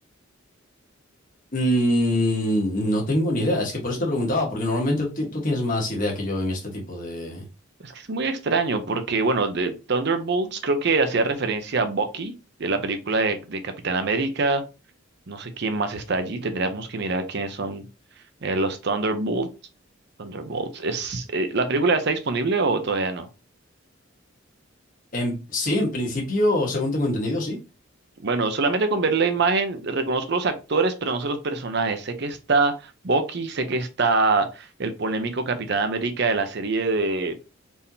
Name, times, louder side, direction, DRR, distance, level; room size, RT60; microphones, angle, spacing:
voice 1, 1.5-7.4 25.1-27.6, left 1 dB, 40° left, 1.4 m, -24 dB
voice 2, 7.8-12.3 12.6-14.6 15.3-17.8 18.4-19.5 20.2-23.3 28.2-37.4, right 3 dB, 55° right, 0.7 m, -24 dB
4.4 x 3.6 x 2.7 m
head